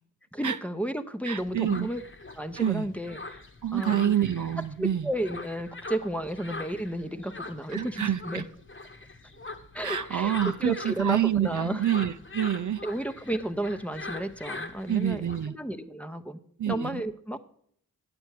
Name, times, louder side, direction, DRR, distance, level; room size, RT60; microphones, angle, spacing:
voice 1, 0.3-2.0 2.4-3.4 3.7-4.1 4.8-8.4 9.7-11.8 12.8-16.4 16.7-17.4, right 1 dB, 5° left, 6 dB, 0.8 m, -33 dB
voice 2, 1.3-1.9 2.6-2.9 3.6-5.1 7.7-8.4 9.8-12.8 14.9-15.5 16.6-17.0, right 10 dB, 60° right, 11 dB, 0.5 m, -27 dB
sound 1, 1.4-15.4, left 3 dB, 35° left, 1.2 m, -42 dB
9.6 x 7.9 x 4.8 m, 0.64 s
cardioid pair, 45°, 35 cm